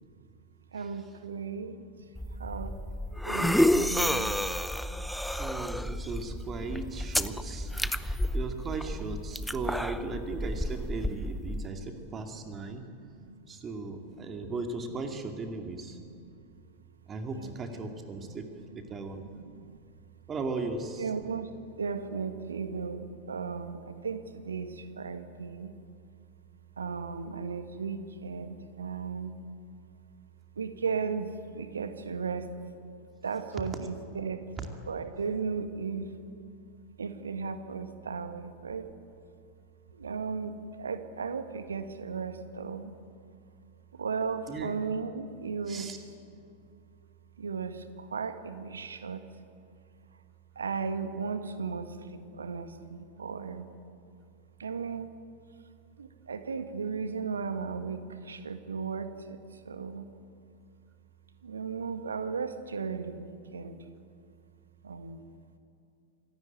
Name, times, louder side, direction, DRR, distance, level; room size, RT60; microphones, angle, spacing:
voice 1, 0.7-2.1 2.4-2.8 3.2-4.3 5.9-6.0 6.9-7.1 7.7-8.0 11.6-11.7 12.4-13.4 14.2-14.4 15.9-16.3 17.3-17.5 17.9-18.5 18.8-18.9 19.2-19.8 21.0-25.7 26.8-29.4 30.5-32.5 33.2-34.5 34.9-36.1 37.0-38.9 39.9-42.9 43.9-45.9 47.4-49.3 50.5-53.7 54.6-55.1 56.0-60.1 61.4-63.8 64.8-65.2, right 5 dB, 70° right, 9 dB, 1.6 m, -36 dB
One Yawn, 2.2-11.7, left 1 dB, ahead, 0.8 m, -30 dB
voice 2, 5.4-12.8 13.5-16.0 17.1-19.2 20.3-21.1 34.6-34.7 44.5-44.7 45.7-46.0, right 3 dB, 25° right, 5 dB, 2.3 m, -37 dB
27.0 x 17.0 x 9.2 m, 2.5 s
figure-of-eight pair, 90°, 0 cm